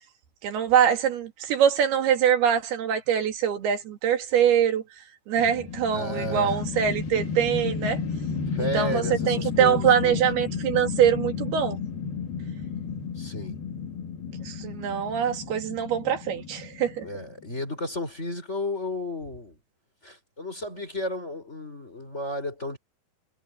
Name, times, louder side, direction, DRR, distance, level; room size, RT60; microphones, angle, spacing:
voice 1, 0.4-4.8 5.3-8.0 8.7-11.8 14.4-17.1, right 8 dB, 80° right, 4.1 m, -23 dB
sound 1, 5.4-17.6, left 6 dB, 70° left, 4.8 m, -32 dB
voice 2, 5.9-6.6 8.5-10.2 13.2-13.6 17.0-19.6 20.0-22.8, left 1 dB, 15° left, 4.4 m, -33 dB
omnidirectional pair, 4.5 m